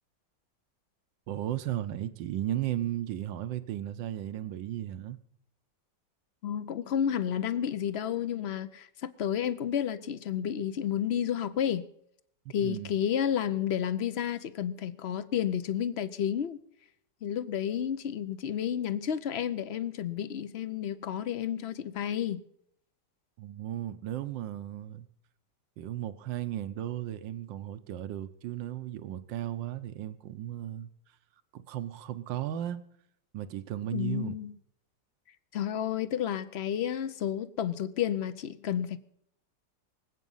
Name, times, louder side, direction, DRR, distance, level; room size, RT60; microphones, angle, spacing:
voice 1, 1.3-5.2 12.4-12.9 23.4-25.1 25.8-30.9 31.5-32.8 33.3-34.3, right 12 dB, 80° right, 1.5 m, -35 dB
voice 2, 6.4-11.9 12.5-16.6 17.2-22.4 33.9-34.5 35.5-39.0, left 9 dB, 65° left, 0.6 m, -31 dB
24.0 x 8.3 x 5.5 m
omnidirectional pair, 2.0 m